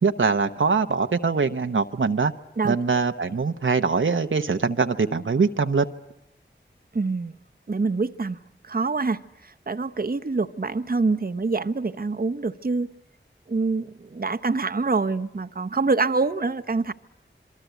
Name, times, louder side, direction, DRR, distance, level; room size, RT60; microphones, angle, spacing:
voice 1, 0.0-2.3 2.6-5.9, right 4 dB, 75° right, 0.9 m, -23 dB
voice 2, 6.9-7.3 7.7-8.4 8.6-12.9 13.5-16.9, right 3 dB, 45° right, 0.9 m, -25 dB
27.5 x 23.0 x 8.1 m
wide cardioid pair, 45°, 20 cm